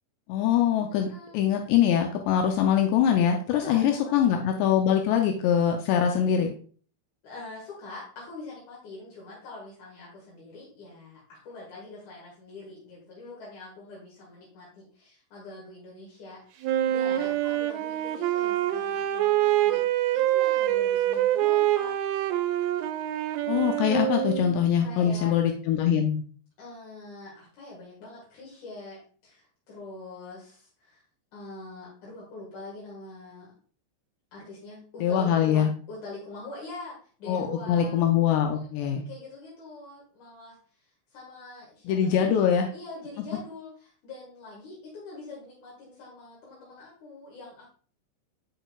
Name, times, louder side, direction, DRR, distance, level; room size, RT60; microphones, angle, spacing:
voice 1, 0.3-1.1 1.3-6.5 23.5-26.2 35.0-35.7 37.3-39.0 41.9-42.7, left 9 dB, 85° left, 3 dB, 2.5 m, -23 dB
voice 2, 0.9-1.4 3.5-4.4 7.2-21.9 24.8-25.3 26.6-31.0 31.3-33.5 34.3-38.0 38.5-40.6 41.1-47.6, left 2 dB, 55° left, -5 dB, 2.3 m, -44 dB
Wind instrument woodwind instrument, 16.6-24.6, right 13 dB, 85° right, 3.1 m, -25 dB
8.0 x 6.4 x 2.3 m, 0.43 s
omnidirectional pair, 5.5 m